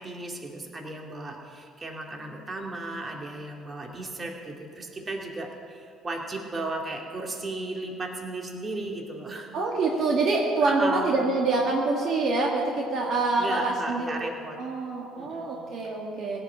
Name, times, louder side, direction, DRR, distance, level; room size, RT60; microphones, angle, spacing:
voice 1, 0.0-9.5 10.6-11.2 13.4-14.6 15.2-15.7, right 2 dB, 30° right, 1 dB, 2.3 m, -35 dB
voice 2, 9.5-14.2 14.6-16.4, right 3 dB, 55° right, -1 dB, 1.7 m, -26 dB
17.5 x 6.0 x 9.1 m, 2.4 s
hypercardioid pair, 60°, 0 cm